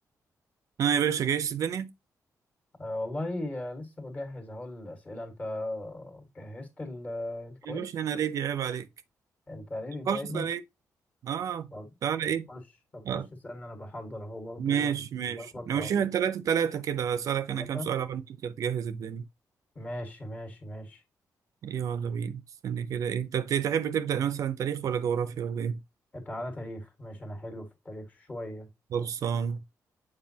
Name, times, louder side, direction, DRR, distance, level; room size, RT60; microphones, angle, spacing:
voice 1, 0.8-1.9 7.7-8.9 10.1-10.6 11.2-11.7 12.0-12.5 13.1-13.3 14.6-19.2 21.6-25.8 28.9-29.6, right 8 dB, 60° right, 0.6 m, -29 dB
voice 2, 2.8-7.9 9.5-10.4 11.7-11.9 12.5-12.6 12.9-13.0 13.4-15.0 15.3-16.1 17.5-17.9 19.7-21.0 26.1-28.7, left 1 dB, 25° left, 1.7 m, -38 dB
7.4 x 4.7 x 2.8 m
wide cardioid pair, 180°, 6 cm